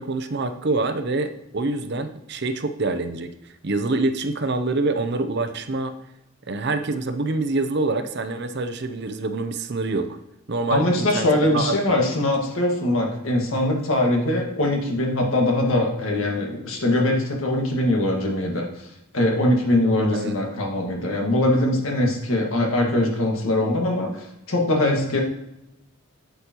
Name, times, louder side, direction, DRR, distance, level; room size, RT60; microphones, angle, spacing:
voice 1, 0.0-3.3 3.6-5.9 6.5-10.2 10.5-12.0 20.1-20.4, right 3 dB, 50° right, 9 dB, 0.6 m, -26 dB
voice 2, 10.7-18.9 19.1-25.2, left 1 dB, 75° left, 1 dB, 1.8 m, -22 dB
8.3 x 8.0 x 3.0 m, 0.87 s
head